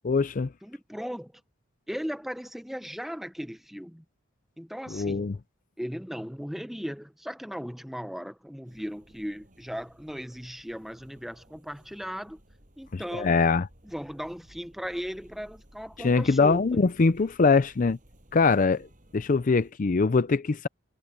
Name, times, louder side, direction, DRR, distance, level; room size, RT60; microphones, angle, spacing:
voice 1, 0.1-0.5 4.9-5.4 12.9-13.7 16.0-18.0 18.3-18.9 19.1-20.7, left 4 dB, 40° left, 0.5 m, -23 dB
voice 2, 0.6-1.4 1.9-4.0 4.6-5.3 5.8-12.4 12.8-13.4 13.8-16.8, equal, ahead, 0.8 m, -37 dB
sound 1, 8.6-19.7, equal, 40° right, 7.7 m, -57 dB
head